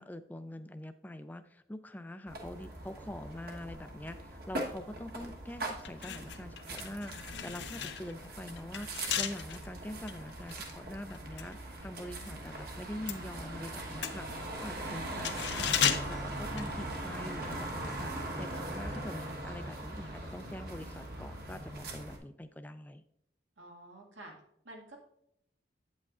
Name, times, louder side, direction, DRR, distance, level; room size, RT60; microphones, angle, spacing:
voice 1, 0.0-7.1 7.4-14.3 14.6-15.8 16.1-18.1 18.4-23.0, left 1 dB, 10° left, 10 dB, 0.3 m, -44 dB
sound 1, 2.3-22.2, right 1 dB, 55° right, 1.1 m, -41 dB
sound 2, 5.8-12.4 12.7-17.3 17.6-17.8, left 9 dB, 70° left, 0.6 m, -36 dB
sound 3, 12.9-22.0, right 1 dB, 70° right, 2.0 m, -57 dB
voice 2, 23.6-24.3 24.6-25.0, right 1 dB, 90° right, 0 dB, 1.9 m, -50 dB
8.7 x 8.2 x 2.4 m, 0.78 s
head